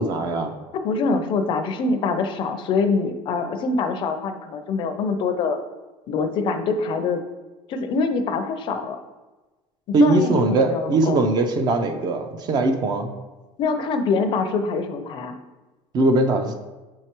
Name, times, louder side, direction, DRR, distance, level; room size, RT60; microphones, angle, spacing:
voice 1, 0.0-0.5 9.9-13.1 15.9-16.5, right 2 dB, 35° right, 6 dB, 0.5 m, -20 dB
voice 2, 0.7-5.6 6.1-7.2 7.7-9.0 10.0-11.2 13.6-15.3, left 4 dB, 40° left, 7 dB, 0.5 m, -24 dB
7.2 x 4.6 x 3.0 m, 1.2 s
cardioid pair, 160°, 12 cm